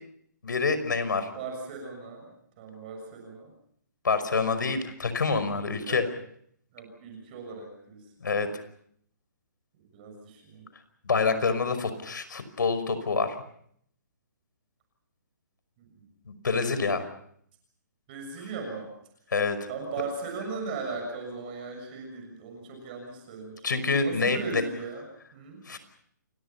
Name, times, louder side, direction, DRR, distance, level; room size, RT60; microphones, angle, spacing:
voice 1, 0.4-1.3 4.0-6.0 8.2-8.5 11.0-13.4 16.3-17.0 19.3-19.6 23.6-24.6 25.7-25.8, left 4 dB, 85° left, 11 dB, 5.5 m, -26 dB
voice 2, 1.3-2.3 2.6-3.5 5.8-6.0 6.7-8.0 9.8-10.7 15.8-16.0 18.1-18.9 19.7-23.6 24.0-25.0 25.3-25.6, right 4 dB, 30° right, 3 dB, 6.7 m, -38 dB
29.0 x 23.5 x 5.8 m, 0.67 s
hypercardioid pair, 165°, 10 cm